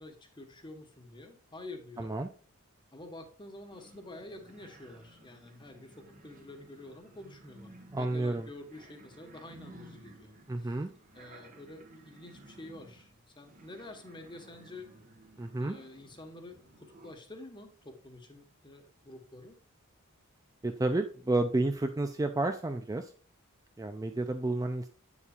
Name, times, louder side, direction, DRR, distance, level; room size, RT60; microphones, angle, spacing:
voice 1, 0.0-2.1 2.9-10.8 11.1-14.9 15.6-19.6, left 2 dB, 20° left, 5 dB, 1.2 m, -48 dB
voice 2, 2.0-2.3 7.9-8.5 10.5-10.9 15.4-15.8 20.6-23.1 23.8-24.9, right 2 dB, 15° right, 6 dB, 0.4 m, -31 dB
sound 1, 3.7-17.1, right 1 dB, 35° right, 1.3 m, -56 dB
8.4 x 7.2 x 2.4 m, 0.40 s
head